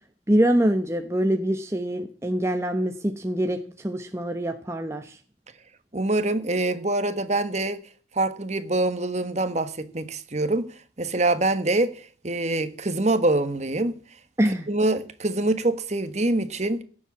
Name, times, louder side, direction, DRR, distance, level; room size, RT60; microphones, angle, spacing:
voice 1, 0.3-5.2 14.4-14.7, right 1 dB, 15° right, 1.0 m, -24 dB
voice 2, 5.9-7.8 8.1-10.7 11.0-14.0 14.7-16.8, right 2 dB, 35° right, 1.4 m, -25 dB
17.0 x 7.5 x 8.4 m
head